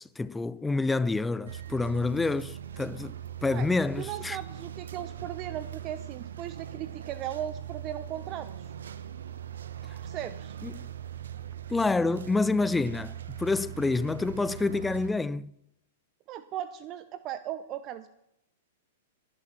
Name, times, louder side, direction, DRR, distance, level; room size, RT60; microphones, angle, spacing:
voice 1, 0.0-3.2 3.4-4.4 10.6-10.9 11.7-15.5, left 3 dB, 10° left, 0.4 m, -28 dB
sound 1, 1.5-15.1, right 10 dB, 85° right, 1.1 m, -41 dB
voice 2, 4.0-8.7 10.0-10.6 16.3-18.1, right 11 dB, 35° right, 0.7 m, -37 dB
16.5 x 11.5 x 5.9 m
hypercardioid pair, 135°, 0 cm